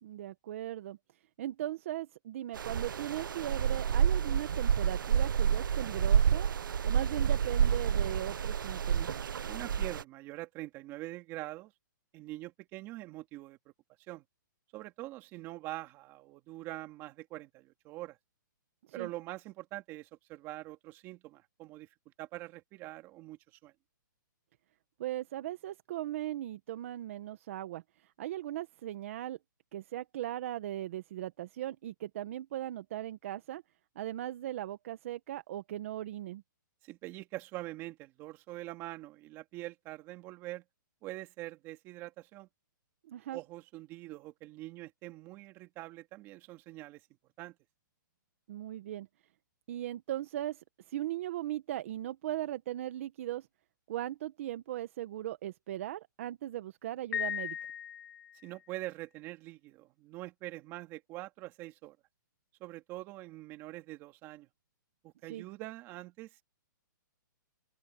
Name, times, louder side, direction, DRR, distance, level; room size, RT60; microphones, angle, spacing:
voice 1, 0.0-1.0 1.4-6.5 6.8-9.1 19.0-19.1 25.0-29.4 29.7-33.6 33.9-36.4 43.1-43.4 48.5-49.1 49.7-53.5 53.9-57.6 65.3-65.4, right 13 dB, 40° right, 1.4 m, -38 dB
sound 1, 2.5-10.0, right 8 dB, 75° right, 1.0 m, -29 dB
voice 2, 9.5-11.7 12.1-13.6 14.1-14.2 14.7-18.2 18.9-23.7 36.8-40.6 41.0-42.5 43.3-47.0 47.4-47.5 58.4-62.0 62.6-64.5 65.0-66.4, right 17 dB, 20° right, 2.5 m, -44 dB
Piano, 57.1-58.6, left 9 dB, 70° left, 1.3 m, -37 dB
hypercardioid pair, 165°, 11 cm